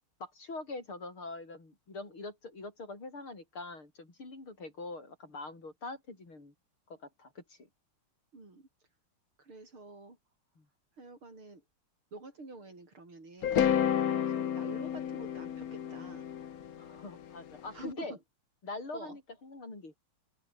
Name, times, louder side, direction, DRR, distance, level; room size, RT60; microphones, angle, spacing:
voice 1, 0.2-6.5 6.9-7.6 10.6-10.7 16.8-18.2 18.6-20.0, left 3 dB, 80° left, 7.7 m, -44 dB
voice 2, 8.3-8.7 9.4-10.2 11.0-11.6 12.1-13.7 14.3-16.3 17.7-18.2 18.9-19.2, right 3 dB, 80° right, 7.6 m, -48 dB
sound 1, 13.4-17.6, left 9 dB, 50° left, 1.3 m, -31 dB
open air
omnidirectional pair, 2.3 m